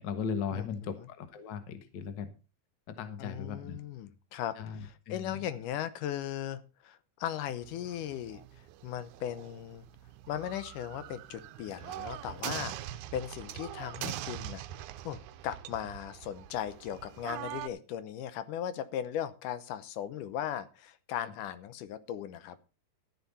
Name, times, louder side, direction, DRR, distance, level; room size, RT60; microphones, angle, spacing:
voice 1, 0.0-2.3 2.9-3.8 4.6-5.4, left 6 dB, 50° left, 9 dB, 1.5 m, -37 dB
voice 2, 0.5-1.1 3.2-8.4 8.8-9.9 10.3-14.6 15.1-22.6, left 10 dB, 85° left, 13 dB, 2.5 m, -38 dB
sound 1, 7.6-17.7, right 13 dB, 75° right, 2.0 m, -43 dB
13.0 x 10.5 x 4.2 m, 0.32 s
omnidirectional pair, 3.6 m